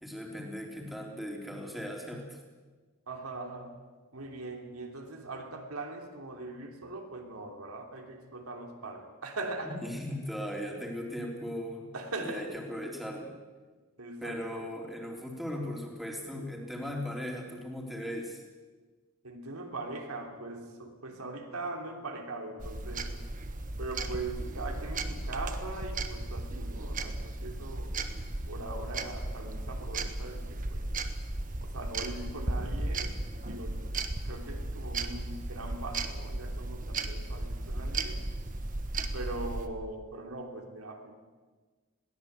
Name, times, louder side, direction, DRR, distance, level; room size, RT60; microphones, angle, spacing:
voice 1, 0.0-2.4 9.7-11.9 12.2-13.4 14.2-18.4, equal, ahead, 0 dB, 3.5 m, -38 dB
voice 2, 3.1-3.7 4.1-9.8 11.9-12.6 14.0-14.7 19.2-23.2 23.8-27.9 28.5-30.9 31.6-33.2 33.4-34.0 34.2-38.2 39.1-41.1, right 2 dB, 85° right, 2 dB, 3.3 m, -41 dB
sound 1, 22.6-39.7, right 2 dB, 35° right, 1.3 m, -35 dB
21.5 x 17.5 x 8.2 m, 1.4 s
head